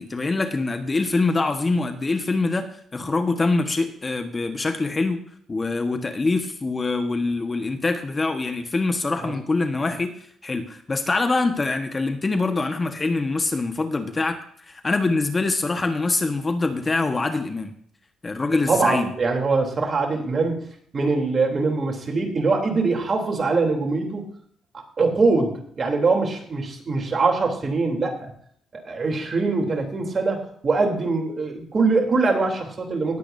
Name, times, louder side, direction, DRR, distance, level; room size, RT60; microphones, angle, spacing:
voice 1, 0.0-2.7 2.9-5.2 5.5-10.1 10.4-14.4 14.7-17.7 18.2-19.1, left 3 dB, 25° left, 7 dB, 1.4 m, -24 dB
voice 2, 18.7-20.7 20.9-24.2 25.0-28.3 28.7-33.2, right 3 dB, 40° right, 1 dB, 3.3 m, -23 dB
19.5 x 8.4 x 2.7 m, 0.63 s
cardioid pair, 90°, 0 cm